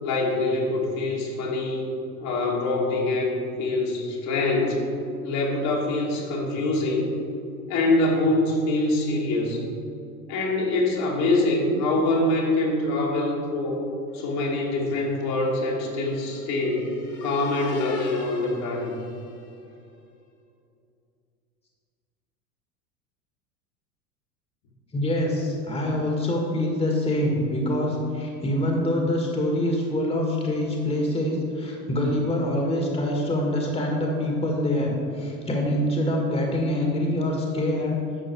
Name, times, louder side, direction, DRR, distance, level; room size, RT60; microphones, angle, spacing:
voice 1, 0.0-1.9 2.2-4.8 5.2-7.1 7.7-9.6 10.3-13.8 14.1-16.9 17.2-18.9, left 2 dB, 50° left, -2 dB, 2.5 m, -24 dB
sound 1, 14.4-19.8, left 4 dB, 30° left, 2.2 m, -45 dB
voice 2, 24.9-38.0, left 1 dB, 15° left, -1 dB, 2.0 m, -25 dB
11.5 x 7.3 x 4.8 m, 2.5 s
figure-of-eight pair, 80°, 46 cm